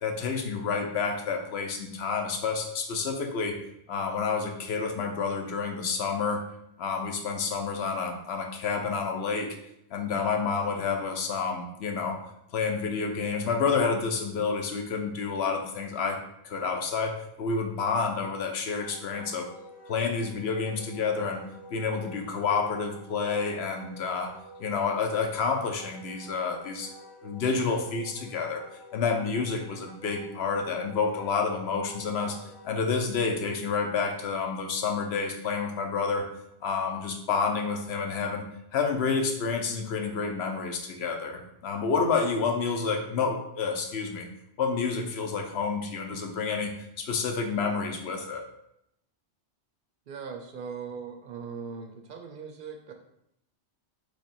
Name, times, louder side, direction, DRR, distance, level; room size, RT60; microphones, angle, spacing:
voice 1, 0.0-3.5 3.9-6.4 6.8-9.6 9.9-12.2 12.5-16.2 16.4-17.1 17.4-19.5 19.9-21.4 21.7-24.3 24.6-26.9 27.2-28.6 28.9-32.4 32.6-36.2 36.6-38.4 38.7-44.3 44.6-48.4, left 5 dB, 65° left, 3 dB, 0.8 m, -29 dB
Wind instrument woodwind instrument, 18.8-32.8, equal, 45° left, 0.5 m, -50 dB
voice 2, 50.1-52.9, right 6 dB, 60° right, 4 dB, 0.6 m, -39 dB
3.4 x 3.3 x 4.1 m, 0.78 s
omnidirectional pair, 1.2 m